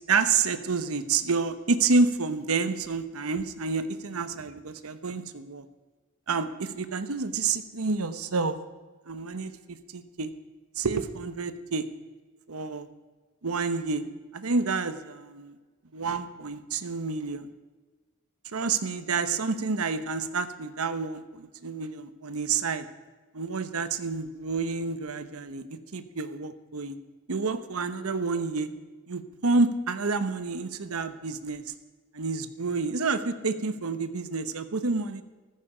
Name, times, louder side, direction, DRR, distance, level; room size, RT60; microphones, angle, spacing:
voice 1, 0.1-5.6 6.3-8.6 9.0-9.5 9.9-10.3 10.8-11.9 12.5-12.9 13.4-14.0 14.3-15.5 15.9-17.5 18.5-22.9 23.3-27.0 27.3-28.7 29.1-31.6 32.1-35.2, right 4 dB, 85° right, 11 dB, 1.0 m, -29 dB
14.5 x 14.5 x 5.0 m, 1.3 s
head